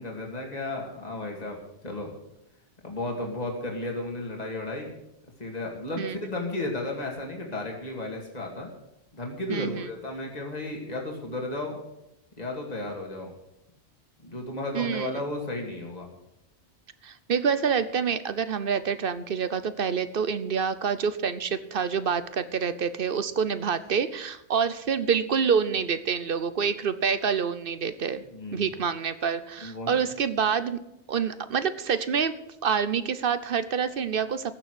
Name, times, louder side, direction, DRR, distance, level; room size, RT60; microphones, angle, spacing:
voice 1, 0.0-1.6 1.8-2.1 2.8-4.9 5.4-8.7 9.1-11.8 12.3-13.3 14.2-16.1 28.3-28.7 29.6-30.0, left 2 dB, 35° left, 0 dB, 2.6 m, -33 dB
voice 2, 9.5-9.9 14.7-15.1 17.0-28.2 28.5-30.8 31.1-32.3 32.6-34.5, right 6 dB, 55° right, 13 dB, 0.9 m, -27 dB
15.5 x 6.9 x 8.1 m, 0.87 s
omnidirectional pair, 1.2 m